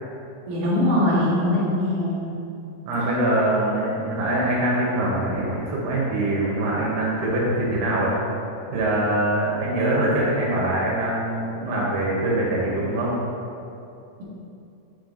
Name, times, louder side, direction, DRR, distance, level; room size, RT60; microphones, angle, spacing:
voice 1, 0.5-2.3, left 1 dB, 45° right, -8 dB, 2.3 m, -22 dB
voice 2, 2.9-8.1 8.7-13.1, right 1 dB, 75° right, -5 dB, 3.2 m, -23 dB
9.1 x 5.1 x 3.9 m, 2.7 s
omnidirectional pair, 4.8 m